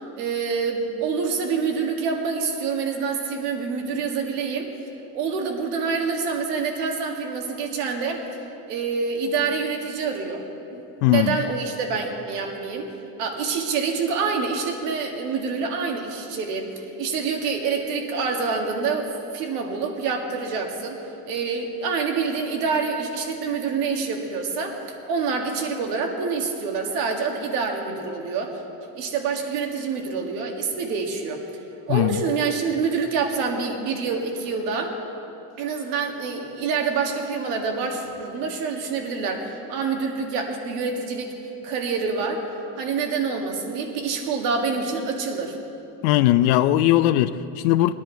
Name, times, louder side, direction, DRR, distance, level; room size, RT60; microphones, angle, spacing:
voice 1, 0.2-4.7 5.1-8.2 8.7-10.5 10.7-12.9 13.2-21.0 21.3-28.5 28.9-31.4 31.9-34.9 35.6-41.3 41.6-42.4 42.8-45.6, right 5 dB, 85° right, 1.9 m, -26 dB
voice 2, 11.0-11.4 31.9-32.2 46.0-47.9, left 14 dB, 75° left, 0.6 m, -19 dB
19.0 x 10.0 x 4.5 m
supercardioid pair, 130°, 45 cm